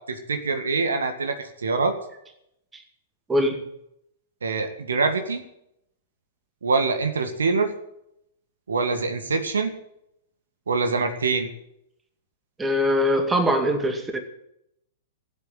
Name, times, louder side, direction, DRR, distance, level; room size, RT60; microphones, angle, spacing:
voice 1, 0.1-2.0 4.4-5.4 6.6-7.7 8.7-9.7 10.7-11.5, right 4 dB, 75° right, 7 dB, 1.8 m, -24 dB
voice 2, 3.3-3.6 12.6-14.2, equal, 15° right, 5 dB, 2.3 m, -22 dB
15.0 x 8.1 x 9.6 m, 0.78 s
figure-of-eight pair, 105°, 0 cm